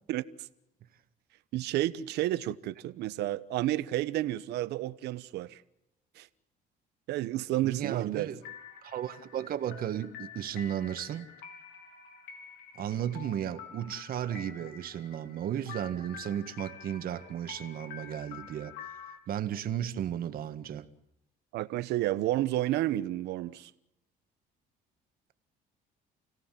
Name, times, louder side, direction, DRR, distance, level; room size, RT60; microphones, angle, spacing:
voice 1, 0.1-0.5 1.5-5.6 6.2-6.3 7.1-8.3 21.5-23.7, right 14 dB, 80° right, 1.1 m, -31 dB
voice 2, 7.6-8.4 8.8-11.3 12.8-18.8 19.3-20.9, right 10 dB, 60° right, 1.8 m, -34 dB
sound 1, 8.4-19.2, left 7 dB, 85° left, 4.5 m, -48 dB
29.5 x 17.0 x 7.7 m
cardioid pair, 110°, 17 cm